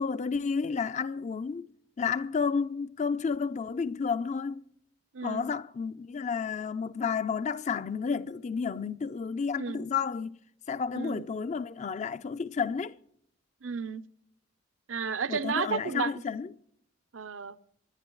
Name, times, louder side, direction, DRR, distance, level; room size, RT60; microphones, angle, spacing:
voice 1, 0.0-1.7 2.0-4.7 5.2-10.4 10.7-13.0 15.3-16.5, left 5 dB, 35° left, 0.4 m, -31 dB
voice 2, 5.1-5.5 9.6-9.9 10.9-11.2 13.6-14.0 14.9-16.1 17.1-17.6, right 5 dB, 85° right, 0.7 m, -32 dB
27.0 x 10.5 x 3.1 m
head